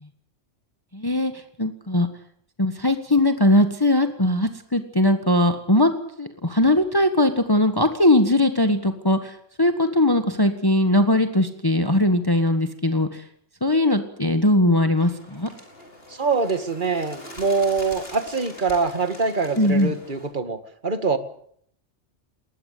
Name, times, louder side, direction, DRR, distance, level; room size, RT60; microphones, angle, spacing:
voice 1, 0.9-2.1 2.6-5.9 6.2-13.2 13.6-15.5 19.6-19.9, left 1 dB, 20° left, 8 dB, 1.6 m, -20 dB
Bird, 15.0-20.3, left 1 dB, 50° left, 5.9 m, -43 dB
voice 2, 16.1-21.2, right 4 dB, 40° right, 10 dB, 2.1 m, -24 dB
20.5 x 20.0 x 8.5 m, 0.66 s
omnidirectional pair, 1.3 m